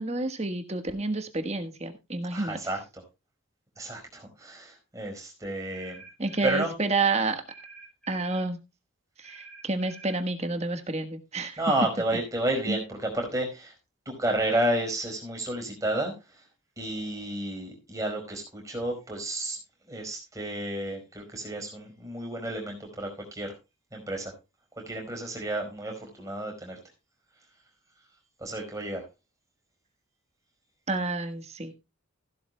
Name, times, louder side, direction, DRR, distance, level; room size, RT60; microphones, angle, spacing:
voice 1, 0.0-2.6 6.2-7.4 8.1-8.6 9.2-11.6 12.7-12.8 30.9-31.7, right 3 dB, 30° right, 7 dB, 1.4 m, -29 dB
voice 2, 2.3-2.8 3.8-6.0 6.4-6.7 11.6-13.7 14.0-16.1 16.8-19.6 19.9-23.5 23.9-24.3 24.9-26.8 28.4-29.0, right 1 dB, 15° right, 1 dB, 4.8 m, -31 dB
sound 1, 5.7-6.7 7.5-8.5 9.2-10.2, right 4 dB, 5° left, 5.5 m, -48 dB
15.5 x 12.0 x 2.2 m, 0.26 s
head